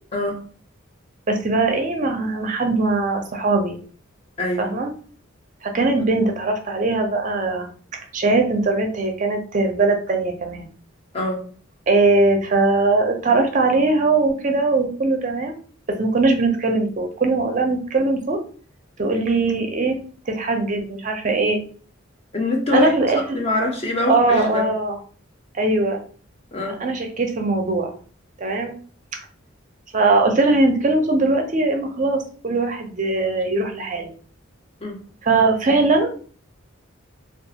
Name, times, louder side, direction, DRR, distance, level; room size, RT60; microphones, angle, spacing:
voice 1, 0.1-0.4 4.4-4.7 11.1-11.5 22.3-22.9 23.3-24.7 26.5-26.8 34.8-35.0, left 2 dB, 30° left, 0.5 m, -23 dB
voice 2, 1.3-3.8 4.6-4.9 5.6-7.7 8.1-10.7 11.9-15.6 16.0-18.4 19.0-20.0 20.3-21.6 22.7-23.4 24.0-24.9 25.6-26.0 26.8-27.9 28.4-28.7 29.9-34.1 35.2-36.2, right 3 dB, 40° right, 0.4 m, -20 dB
2.4 x 2.3 x 2.7 m
head